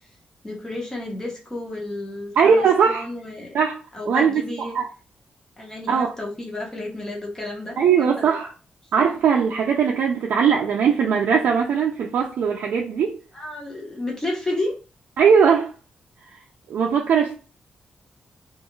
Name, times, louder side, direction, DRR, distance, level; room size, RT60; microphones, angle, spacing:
voice 1, 0.4-3.6 3.9-4.8 5.6-8.4 9.0-9.1 13.3-14.8, left 1 dB, 20° left, 0.9 m, -31 dB
voice 2, 2.4-3.1 3.5-3.8 4.1-4.9 5.9-6.1 7.8-8.5 8.9-13.2 15.2-15.7 16.7-17.4, right 6 dB, 85° right, 0.4 m, -19 dB
2.4 x 2.3 x 2.9 m
wide cardioid pair, 120°, 3 cm